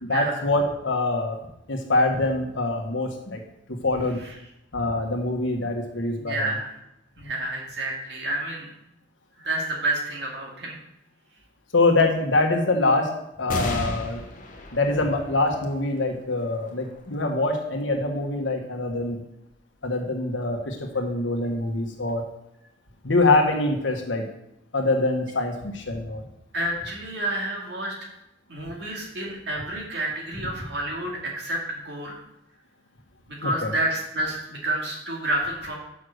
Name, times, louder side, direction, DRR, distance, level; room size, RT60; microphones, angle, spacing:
voice 1, 0.0-1.4 1.7-3.4 3.7-4.2 4.7-6.5 11.7-13.1 13.4-14.2 14.7-19.2 19.8-22.2 23.0-24.3 24.7-26.2 33.4-33.7, left 2 dB, 75° left, 3 dB, 1.4 m, -24 dB
voice 2, 6.2-6.7 7.2-8.7 9.4-10.7 26.5-28.0 28.5-32.2 33.3-35.8, right 1 dB, 60° right, -2 dB, 2.3 m, -29 dB
sound 1, 13.5-20.4 21.0-21.1 22.2-22.8, left 1 dB, 45° left, 1.0 m, -37 dB
6.3 x 5.7 x 6.5 m, 0.85 s
head